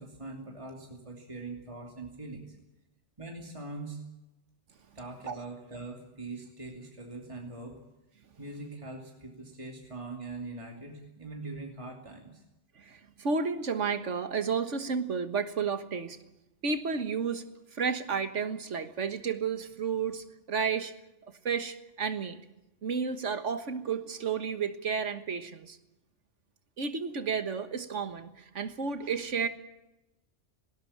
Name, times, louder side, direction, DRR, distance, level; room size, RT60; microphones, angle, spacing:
voice 1, 0.0-2.6 3.2-4.1 4.9-7.8 8.4-12.4, right 2 dB, 25° right, 1 dB, 2.8 m, -42 dB
voice 2, 12.8-16.2 16.6-17.4 17.7-20.9 21.5-22.4 22.8-25.8 26.8-29.5, right 5 dB, 85° right, 10 dB, 1.8 m, -32 dB
19.0 x 19.0 x 8.7 m, 0.96 s
omnidirectional pair, 1.2 m